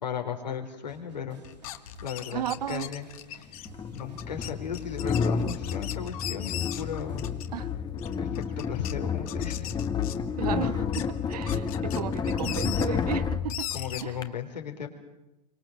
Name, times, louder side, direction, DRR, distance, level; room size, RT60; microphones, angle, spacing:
voice 1, 0.0-1.4 1.6-3.1 3.3-7.2 8.2-9.7 13.7-14.9, left 7 dB, 80° left, 5.0 m, -36 dB
sound 1, 0.9-7.7, right 2 dB, 85° right, 7.0 m, -54 dB
sound 2, 1.4-7.6 8.0-8.9 9.3-10.4 10.8-12.8 13.5-14.0, left 13 dB, 55° left, 2.2 m, -39 dB
voice 2, 2.3-2.9 7.5-7.7 10.4-13.7 14.0-14.3, right 11 dB, 65° right, 1.1 m, -34 dB
sound 3, 2.6-2.7 3.6-14.3, left 6 dB, 20° left, 1.6 m, -30 dB
28.5 x 25.0 x 7.7 m
hypercardioid pair, 105°, 21 cm